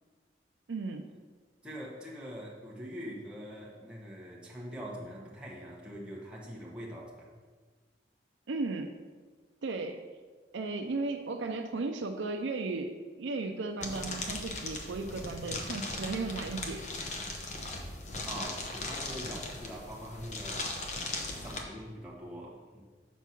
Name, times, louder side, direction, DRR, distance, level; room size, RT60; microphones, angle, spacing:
voice 1, 0.7-1.1 8.5-9.0 9.6-10.0 10.5-16.9, right 3 dB, 90° right, 4 dB, 0.5 m, -35 dB
voice 2, 1.6-7.3 18.2-20.6 21.3-22.8, equal, 5° right, -4 dB, 1.3 m, -43 dB
sound 1, 13.8-21.6, left 2 dB, 40° left, 0.8 m, -38 dB
7.1 x 4.5 x 5.9 m, 1.4 s
head